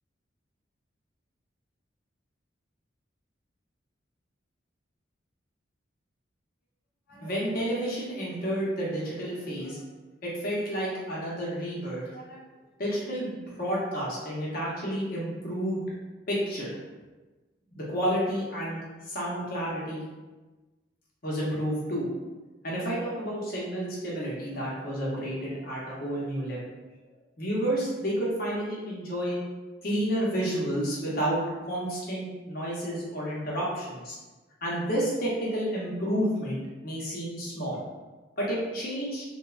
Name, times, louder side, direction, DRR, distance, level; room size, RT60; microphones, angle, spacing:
voice 1, 7.1-9.8 10.2-12.4 12.8-15.8 16.3-16.8 17.8-18.8 19.1-20.0 21.2-22.1 22.6-26.8 27.4-29.4 29.8-34.1 34.6-37.8 38.4-39.2, equal, 50° left, -5 dB, 0.7 m, -30 dB
2.8 x 2.1 x 2.4 m, 1.2 s
head